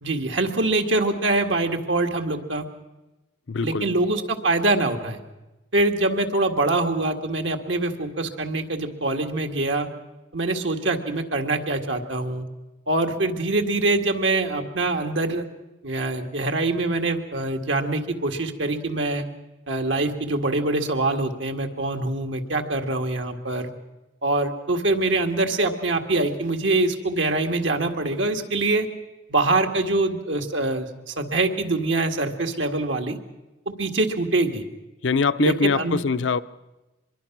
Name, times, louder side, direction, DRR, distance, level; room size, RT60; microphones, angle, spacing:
voice 1, 0.0-2.7 3.6-5.2 5.7-9.9 10.3-12.5 12.9-15.4 15.8-19.3 19.7-23.7 24.2-28.9 29.3-33.2 33.7-34.6 35.4-36.0, right 2 dB, 85° right, 1.9 m, -24 dB
voice 2, 3.5-3.9 35.0-36.4, left 5 dB, 85° left, 0.6 m, -23 dB
24.5 x 22.0 x 6.0 m
head